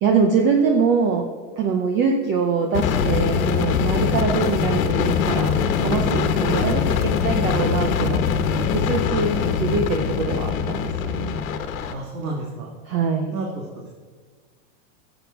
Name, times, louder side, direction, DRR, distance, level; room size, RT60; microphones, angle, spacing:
voice 1, 0.0-8.3 8.7-11.4 12.8-13.4, right 5 dB, 25° right, 3 dB, 0.8 m, -23 dB
sound 1, 2.7-11.9, left 6 dB, 75° left, 1.3 m, -22 dB
voice 2, 11.9-12.7 13.3-13.5, right 2 dB, 80° right, -2 dB, 2.3 m, -30 dB
15.5 x 8.1 x 4.6 m, 1.5 s
supercardioid pair, 165°, 41 cm